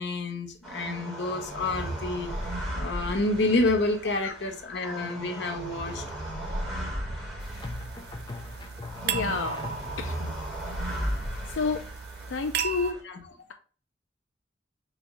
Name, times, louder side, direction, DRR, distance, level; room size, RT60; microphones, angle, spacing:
voice 1, 0.0-2.5 2.8-6.0 13.0-13.2, left 2 dB, 60° left, 5 dB, 0.8 m, -29 dB
sound 1, 0.6-13.0, right 1 dB, ahead, 1.4 m, -36 dB
sound 2, 5.0-5.5 7.6-10.3, left 2 dB, 25° left, 0.5 m, -40 dB
sound 3, 7.4-12.9, right 7 dB, 55° right, 0.4 m, -36 dB
voice 2, 9.0-9.6 10.0-10.3 11.6-11.8 12.3-13.0, left 4 dB, 85° left, 6 dB, 0.4 m, -30 dB
4.1 x 2.6 x 4.6 m, 0.41 s
head